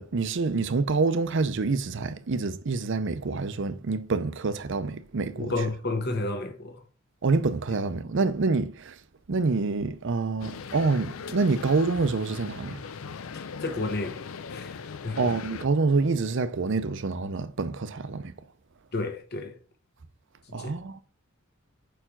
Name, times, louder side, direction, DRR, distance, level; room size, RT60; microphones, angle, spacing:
voice 1, 0.0-5.5 7.2-9.0 9.3-12.8 15.2-18.3 20.5-21.0, right 4 dB, 60° right, 0.6 m, -27 dB
voice 2, 5.3-6.8 13.3-14.2 14.5-15.2 18.9-19.6 20.5-20.7, left 2 dB, 50° left, 1.1 m, -31 dB
sound 1, 10.4-15.7, left 5 dB, 80° left, 0.5 m, -39 dB
5.0 x 4.6 x 5.7 m
head